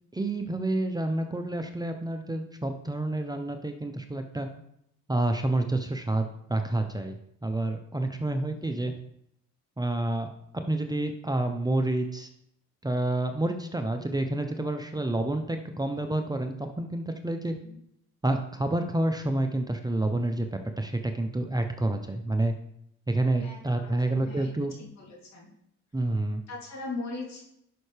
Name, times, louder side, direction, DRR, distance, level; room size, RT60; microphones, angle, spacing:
voice 1, 0.1-4.5 5.1-8.9 9.8-10.3 10.7-12.3 12.8-17.5 18.2-22.5 23.1-24.7 25.9-26.4, right 2 dB, 15° right, 5 dB, 0.7 m, -29 dB
voice 2, 8.1-8.8 17.6-17.8 23.4-24.5 24.8-25.5 26.5-27.4, left 3 dB, 60° left, -3 dB, 3.1 m, -40 dB
11.0 x 5.5 x 3.4 m, 0.76 s
cardioid pair, 90°, 30 cm